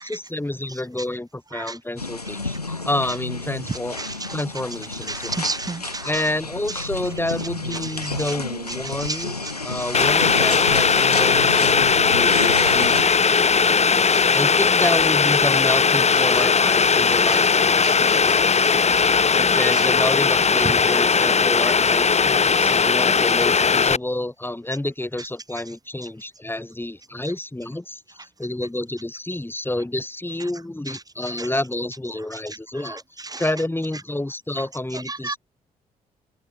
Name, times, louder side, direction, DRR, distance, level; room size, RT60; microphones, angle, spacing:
voice 1, 0.0-5.4 6.0-9.3 9.6-12.9 14.3-18.9 19.3-33.0 33.4-35.4, left 1 dB, 10° left, 6.8 m, -29 dB
sound 1, 2.0-13.0, left 3 dB, 90° left, 6.7 m, -30 dB
voice 2, 5.1-6.0 17.8-18.2 33.3-33.4 35.2-35.3, right 3 dB, 20° right, 1.5 m, -29 dB
Boiling, 9.9-24.0, left 5 dB, 35° left, 2.9 m, -18 dB
open air
figure-of-eight pair, 40°, 19 cm